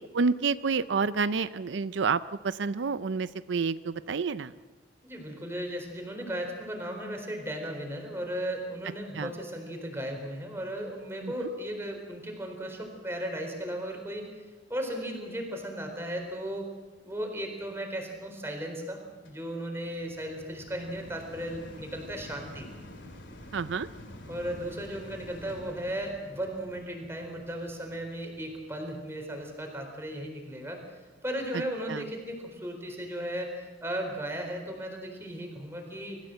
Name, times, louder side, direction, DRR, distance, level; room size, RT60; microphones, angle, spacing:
voice 1, 0.1-4.5 9.1-9.3 11.2-11.3 23.5-23.9 31.9-32.0, right 5 dB, 85° right, 14 dB, 0.5 m, -29 dB
voice 2, 5.0-14.3 14.7-16.7 17.0-19.0 19.2-22.7 24.3-30.8 31.2-36.2, equal, 15° right, 2 dB, 4.2 m, -36 dB
sound 1, 19.2-30.5 31.1-31.2, left 1 dB, 90° left, 2.8 m, -49 dB
25.0 x 15.0 x 7.8 m, 1.3 s
head